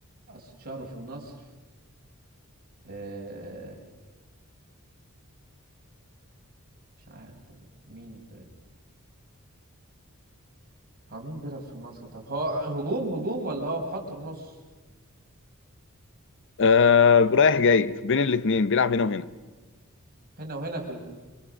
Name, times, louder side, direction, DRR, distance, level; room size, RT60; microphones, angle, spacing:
voice 1, 0.3-1.3 2.8-3.8 7.1-7.6 7.9-8.4 11.1-14.5 20.4-21.0, right 1 dB, 45° right, 5.2 m, -34 dB
voice 2, 16.6-19.3, left 5 dB, 60° left, 0.7 m, -20 dB
29.0 x 24.0 x 6.4 m
head